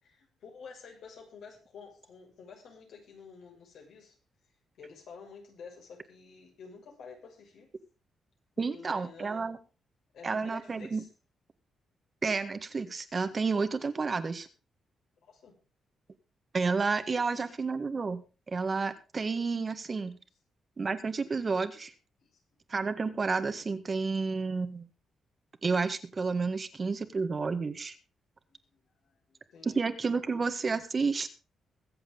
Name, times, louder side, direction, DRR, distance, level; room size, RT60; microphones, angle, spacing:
voice 1, 0.0-4.2 4.8-7.7 8.6-9.5 10.1-11.1 15.2-15.6 17.1-17.5 22.2-22.4 28.5-29.8, left 5 dB, 75° left, 2 dB, 6.1 m, -51 dB
voice 2, 8.6-9.6 10.2-11.0 12.2-14.5 16.5-20.2 20.8-21.9 22.7-24.9 25.6-27.9 29.6-31.3, right 4 dB, 35° right, 10 dB, 1.6 m, -31 dB
22.5 x 7.9 x 3.8 m, 0.33 s
cardioid pair, 110°, 0 cm